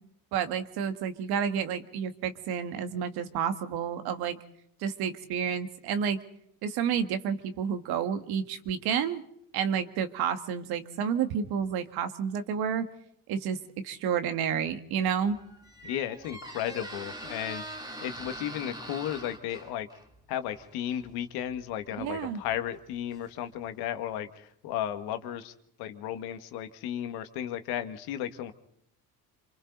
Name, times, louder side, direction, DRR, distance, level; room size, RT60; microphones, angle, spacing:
voice 1, 0.3-4.4 4.8-6.2 6.6-9.2 9.5-12.9 13.3-13.6 13.8-15.4 22.0-22.4, right 7 dB, 80° right, 9 dB, 2.0 m, -30 dB
Squeak, 15.1-23.8, right 1 dB, 10° right, 2.5 m, -44 dB
voice 2, 15.8-17.6 18.0-19.9 20.3-25.5 25.8-28.5, left 11 dB, 85° left, 9 dB, 1.8 m, -34 dB
28.0 x 25.0 x 4.0 m, 0.71 s
cardioid pair, 100°, 37 cm